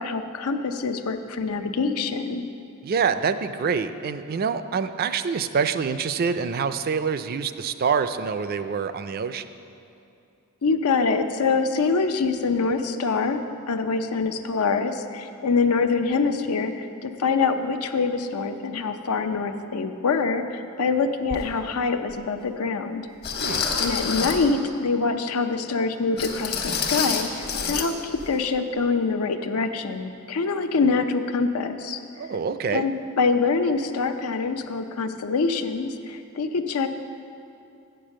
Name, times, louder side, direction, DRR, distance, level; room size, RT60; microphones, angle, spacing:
voice 1, 0.0-2.5 10.6-23.0 23.8-32.0 32.7-36.9, left 4 dB, 90° left, 8 dB, 0.6 m, -25 dB
voice 2, 2.8-9.5 23.4-23.7 32.2-32.8, right 6 dB, 45° right, 11 dB, 0.3 m, -26 dB
sound 1, 21.3-21.4 22.1-22.2 23.2-24.5 26.2-27.9 28.2-28.3 28.8-28.9, left 5 dB, 45° left, 0.9 m, -27 dB
7.9 x 6.8 x 7.4 m, 2.6 s
head